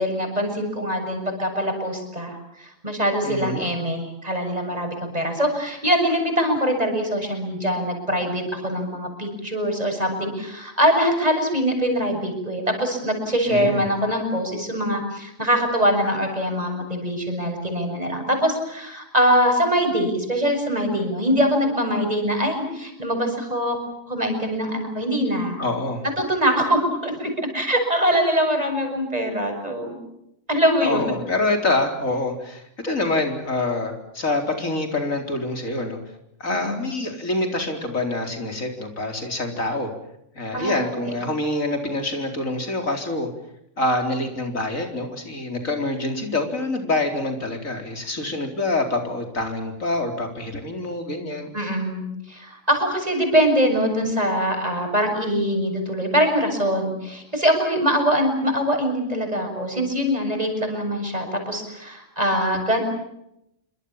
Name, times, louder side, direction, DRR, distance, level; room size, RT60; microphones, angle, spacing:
voice 1, 0.0-23.8 24.1-25.6 26.2-30.0 30.5-31.0 36.5-36.8 40.5-40.9 51.5-62.8, equal, 30° right, 4 dB, 7.2 m, -23 dB
voice 2, 3.2-3.7 13.5-13.8 25.6-26.0 30.8-36.0 36.4-39.9 40.4-43.3 43.8-51.5, left 2 dB, 75° left, 4 dB, 4.6 m, -26 dB
27.5 x 25.0 x 7.3 m, 0.81 s
omnidirectional pair, 1.4 m